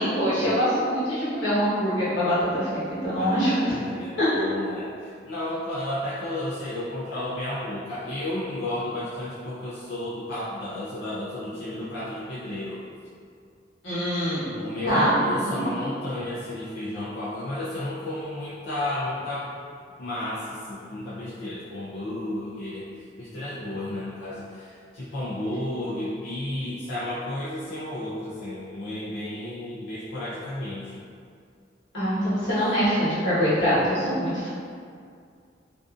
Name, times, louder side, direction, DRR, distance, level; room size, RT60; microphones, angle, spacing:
voice 1, 0.0-3.8 4.2-4.3 13.8-14.5 14.9-15.1 15.4-15.6 31.9-34.5, equal, 90° left, -11 dB, 1.2 m, -24 dB
voice 2, 3.2-12.8 14.6-19.5 20.0-22.9 23.2-31.0, left 1 dB, 65° left, -10 dB, 0.5 m, -32 dB
2.5 x 2.4 x 2.3 m, 2.3 s
head